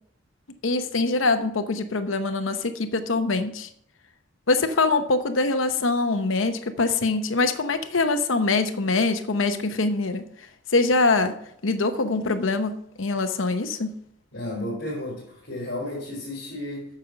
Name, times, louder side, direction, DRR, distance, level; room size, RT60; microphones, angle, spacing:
voice 1, 0.6-3.7 4.5-11.3 11.6-13.9, left 3 dB, 85° left, 9 dB, 0.9 m, -24 dB
voice 2, 14.3-16.9, left 1 dB, 60° left, -6 dB, 4.1 m, -33 dB
9.0 x 6.9 x 5.9 m, 0.69 s
head